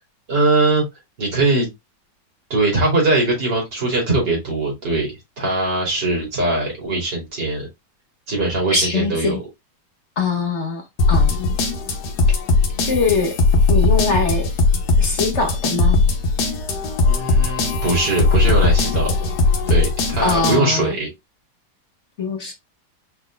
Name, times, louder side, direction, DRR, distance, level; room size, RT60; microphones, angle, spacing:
voice 1, 0.3-0.8 1.2-1.7 2.5-7.7 8.3-9.4 17.0-19.3 19.7-21.1, right 2 dB, 75° right, 3.3 m, -21 dB
voice 2, 8.7-9.4 10.2-10.8 11.1-11.6 12.9-13.4 13.7-14.5 15.0-16.0 20.2-20.9 22.2-22.5, left 4 dB, 50° left, 1.1 m, -22 dB
sound 1, 11.0-20.6, left 3 dB, 70° left, 1.5 m, -18 dB
5.4 x 4.1 x 2.2 m
omnidirectional pair, 1.9 m